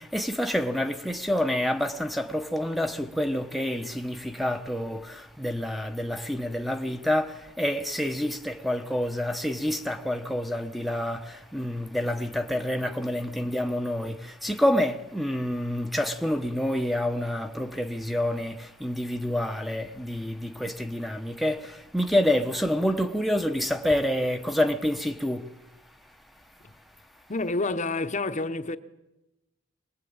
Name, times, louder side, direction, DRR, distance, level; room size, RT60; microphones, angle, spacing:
voice 1, 0.0-25.5, left 1 dB, ahead, 1.0 m, -28 dB
voice 2, 27.3-28.8, left 2 dB, 35° left, 1.0 m, -28 dB
25.5 x 20.0 x 8.8 m
head